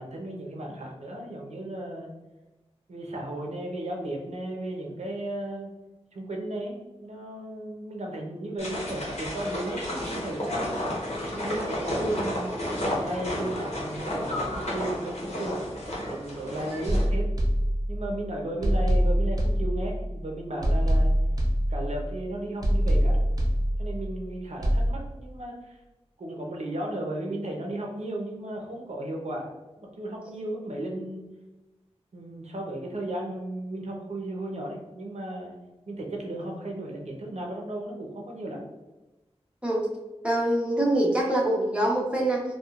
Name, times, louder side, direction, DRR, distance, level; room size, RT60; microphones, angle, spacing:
voice 1, 0.0-2.1 2.9-5.7 6.1-10.7 11.3-15.6 16.1-17.3 17.9-21.1 21.7-23.2 23.8-25.8 26.2-29.5 29.8-31.3 32.1-35.6 35.9-38.6, right 1 dB, 85° right, 0 dB, 0.8 m, -35 dB
sound 1, 8.6-17.0, left 1 dB, 75° left, 1.0 m, -32 dB
sound 2, 16.9-18.2 18.6-20.2 20.6-22.2 22.6-24.2 24.6-24.9, equal, 35° right, 0.7 m, -24 dB
voice 2, 40.2-42.4, right 1 dB, 10° right, -3 dB, 0.9 m, -24 dB
4.3 x 2.3 x 2.4 m, 1.1 s
wide cardioid pair, 70°, 11 cm